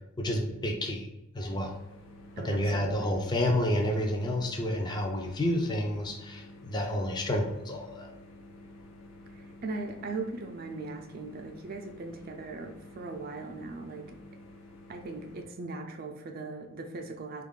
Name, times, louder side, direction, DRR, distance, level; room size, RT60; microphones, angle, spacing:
voice 1, 0.2-1.1 1.3-1.7 2.4-8.1, left 1 dB, 20° left, 2 dB, 0.4 m, -29 dB
sound 1, 1.5-15.4, left 1 dB, 85° left, 0.6 m, -51 dB
voice 2, 2.4-3.2 9.3-14.1 14.9-17.4, right 3 dB, 45° right, 3 dB, 0.4 m, -39 dB
3.4 x 2.4 x 3.7 m, 0.93 s
head